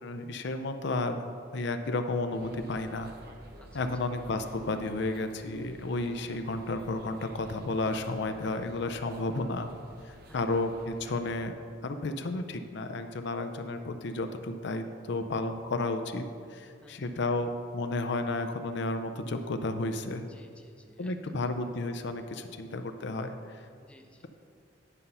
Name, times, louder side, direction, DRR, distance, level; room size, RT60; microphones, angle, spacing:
voice 1, 0.0-3.1 3.7-9.7 10.0-11.5 11.8-16.2 16.5-20.3 21.0-23.4, left 2 dB, 65° left, 8 dB, 0.5 m, -32 dB
sound 1, 2.3-11.4, right 1 dB, 55° right, 0.8 m, -51 dB
voice 2, 10.3-10.6 16.8-17.2 20.3-21.5 23.8-24.3, left 1 dB, 5° left, 3 dB, 0.7 m, -57 dB
10.0 x 5.5 x 5.5 m, 2.3 s
head